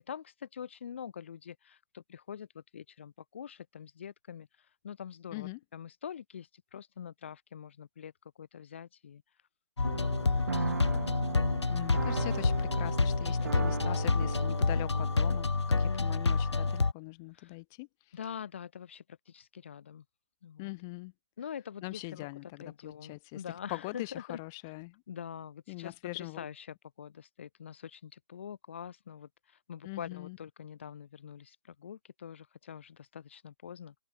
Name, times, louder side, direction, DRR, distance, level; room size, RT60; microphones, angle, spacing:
voice 1, 0.0-8.1 8.4-9.2 9.9-11.0 13.4-14.1 15.7-16.1 17.3-17.6 18.1-20.0 20.4-20.7 21.4-24.4 25.1-26.7 27.0-33.9, left 8 dB, 25° left, 1.4 m, -45 dB
sound 1, 9.8-16.9, left 3 dB, 80° left, 2.1 m, -28 dB
sound 2, 9.8-15.5, right 5 dB, 45° right, 0.7 m, -38 dB
voice 2, 11.7-15.5 15.8-18.2 20.6-21.1 21.8-23.4 23.7-25.0 25.7-26.4 29.8-30.4, left 26 dB, 5° left, 0.5 m, -42 dB
hypercardioid pair, 170°, 14 cm